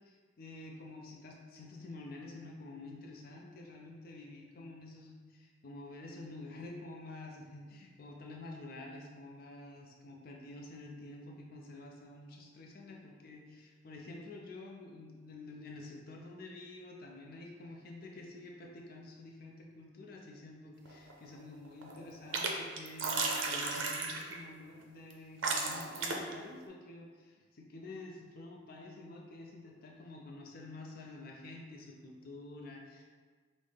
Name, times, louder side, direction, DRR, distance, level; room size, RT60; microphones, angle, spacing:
voice 1, 0.1-33.0, left 2 dB, 50° left, 0 dB, 0.4 m, -49 dB
sound 1, 20.8-21.4 21.6-22.5 22.8-24.4 25.1-25.2 25.4-26.3, right 4 dB, 80° right, 0.5 m, -34 dB
5.5 x 2.0 x 3.3 m, 1.5 s
head